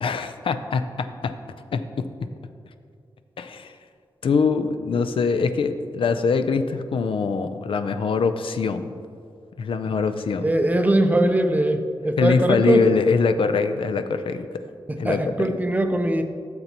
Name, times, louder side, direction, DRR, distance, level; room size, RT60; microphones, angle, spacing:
voice 1, 0.0-1.3 1.7-2.1 3.4-3.7 4.2-8.9 9.6-10.5 12.2-14.6 15.0-15.5, left 5 dB, 70° left, 9 dB, 0.5 m, -23 dB
voice 2, 10.4-12.9 14.9-16.2, right 1 dB, 15° right, 6 dB, 0.5 m, -21 dB
13.5 x 6.7 x 2.9 m, 2.3 s
wide cardioid pair, 170°, 9 cm